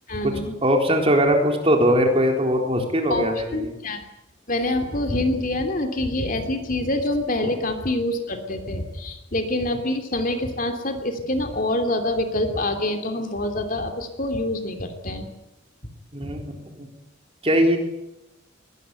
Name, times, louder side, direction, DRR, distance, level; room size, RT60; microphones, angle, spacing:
voice 1, 0.1-0.6 3.1-3.3 3.5-4.0 4.5-15.3 16.2-16.4, left 1 dB, 40° left, 6 dB, 2.9 m, -26 dB
voice 2, 0.6-3.7 16.1-16.9 17.4-17.8, equal, 30° right, 2 dB, 3.9 m, -20 dB
22.0 x 18.5 x 9.1 m, 0.92 s
head